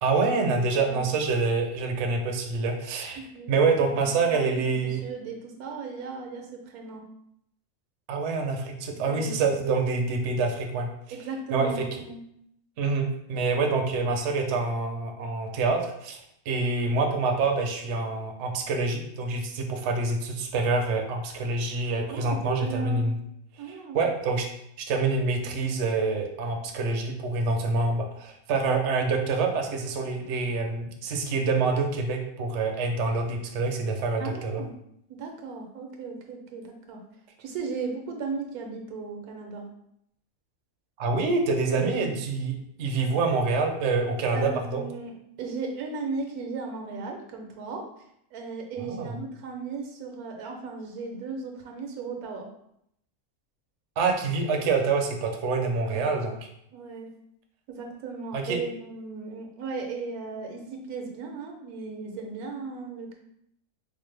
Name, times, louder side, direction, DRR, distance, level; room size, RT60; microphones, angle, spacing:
voice 1, 0.0-3.2 3.5-5.0 8.1-10.9 11.5-11.9 12.8-16.2 16.5-23.2 23.9-24.5 24.8-34.6 41.0-44.8 48.8-49.2 54.0-56.4 58.3-58.6, right 3 dB, 65° right, 3 dB, 0.8 m, -26 dB
voice 2, 0.7-1.1 3.3-3.5 3.8-4.7 4.9-7.1 8.9-9.5 11.1-12.2 22.1-23.1 23.6-24.0 34.2-34.7 35.1-37.0 37.4-39.7 41.7-42.1 43.1-43.2 44.3-45.1 45.4-47.9 48.3-52.5 55.8-56.2 56.7-57.1 57.7-63.1, right 4 dB, 80° right, 3 dB, 1.1 m, -36 dB
4.5 x 2.1 x 3.2 m, 0.75 s
omnidirectional pair, 1.5 m